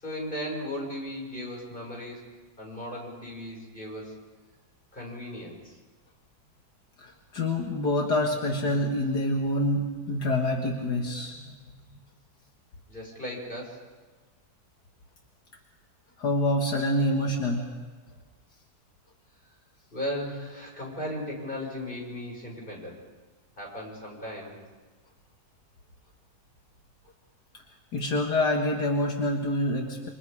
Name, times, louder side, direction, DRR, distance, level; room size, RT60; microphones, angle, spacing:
voice 1, 0.0-2.2 2.6-4.2 4.9-5.8 11.0-11.2 12.9-13.8 19.9-23.0 23.6-24.6, left 1 dB, 30° left, -1 dB, 6.2 m, -36 dB
voice 2, 7.0-11.4 16.2-17.7 27.9-30.1, left 1 dB, 75° left, 1 dB, 2.4 m, -26 dB
27.5 x 25.5 x 5.0 m, 1.3 s
omnidirectional pair, 1.8 m